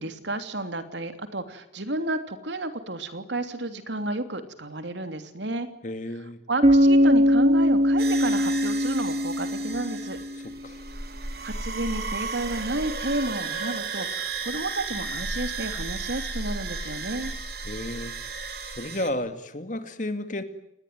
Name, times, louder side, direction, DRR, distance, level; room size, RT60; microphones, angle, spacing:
voice 1, 0.0-5.7 6.5-10.2 11.4-17.3, right 2 dB, 75° right, 8 dB, 3.0 m, -31 dB
voice 2, 5.8-6.4 10.4-10.8 17.6-18.3 18.6-20.4, left 1 dB, 40° left, 9 dB, 2.4 m, -33 dB
Bass guitar, 6.6-10.5, equal, 35° right, 2.7 m, -21 dB
sound 1, 8.0-19.1, right 3 dB, 55° right, 3.5 m, -34 dB
29.0 x 20.0 x 9.4 m, 0.80 s
head